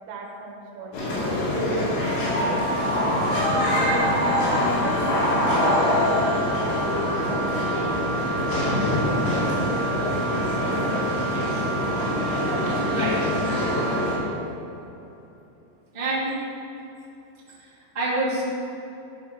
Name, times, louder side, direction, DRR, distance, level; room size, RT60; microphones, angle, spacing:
voice 1, 0.1-1.8 2.2-4.2 4.5-7.7, right 2 dB, 85° right, -1 dB, 3.9 m, -37 dB
sound 1, 0.9-14.2, left 1 dB, 90° left, 5.0 m, -24 dB
Wind instrument woodwind instrument, 1.8-14.3, right 4 dB, 55° right, 2.2 m, -31 dB
sound 2, 3.3-7.2 8.4-8.5, right 1 dB, 70° left, 3.5 m, -31 dB
voice 2, 11.2-11.6 12.9-13.3 15.9-16.3 17.9-18.4, right 2 dB, 30° right, -9 dB, 0.9 m, -27 dB
14.5 x 5.0 x 5.7 m, 2.9 s
omnidirectional pair, 5.5 m